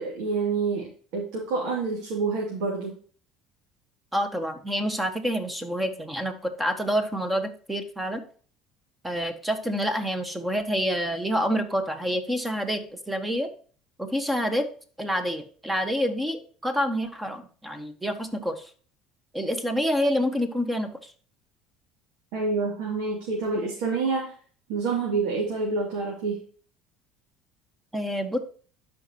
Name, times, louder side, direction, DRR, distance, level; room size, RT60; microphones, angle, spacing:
voice 1, 0.0-2.9 22.3-24.3 24.7-26.4, right 4 dB, 80° right, -2 dB, 2.6 m, -28 dB
voice 2, 4.1-8.2 9.0-13.5 14.0-14.7 15.0-18.7 19.3-21.1 27.9-28.4, equal, 10° right, 8 dB, 1.3 m, -27 dB
12.0 x 5.2 x 2.9 m, 0.43 s
cardioid pair, 115°, 0 cm